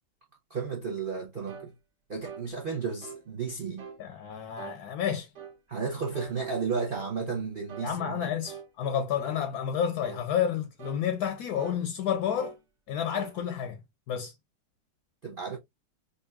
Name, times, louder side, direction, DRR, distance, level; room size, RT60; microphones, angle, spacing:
voice 1, 0.5-1.7 2.1-3.9 5.7-8.3 15.2-15.6, right 5 dB, 80° right, 0.4 m, -33 dB
sound 1, 1.5-1.7 2.2-2.5 3.0-3.3 3.8-4.0 4.6-4.8 5.4-5.6 6.1-6.4 6.9-7.1 7.7-7.9 8.5-8.7 9.2-9.5 10.0-10.3 10.8-11.0 11.6-11.8 12.4-12.6 13.1-13.4, right 6 dB, 55° right, 0.9 m, -44 dB
voice 2, 4.0-5.3 7.8-12.6 12.9-13.8 14.1-14.3, left 8 dB, 70° left, 0.9 m, -30 dB
5.2 x 2.6 x 2.2 m
omnidirectional pair, 2.1 m